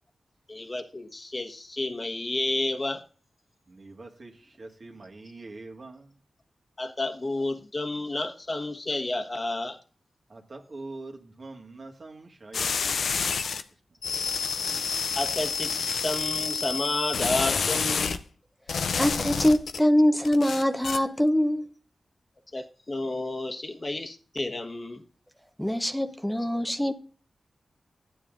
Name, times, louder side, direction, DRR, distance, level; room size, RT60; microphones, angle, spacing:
voice 1, 0.5-3.0 6.8-9.8 15.2-15.7 16.0-18.2 22.5-25.0, left 2 dB, 40° left, 1.3 m, -31 dB
voice 2, 3.7-6.1 10.3-13.6, right 2 dB, 55° right, 1.8 m, -44 dB
sound 1, 12.5-13.6 14.0-18.2 18.7-19.8 20.2-21.0, left 5 dB, 90° left, 0.5 m, -28 dB
voice 3, 19.0-21.6 25.6-26.9, left 1 dB, 5° left, 0.8 m, -23 dB
14.0 x 9.8 x 2.6 m
cardioid pair, 55°, 0 cm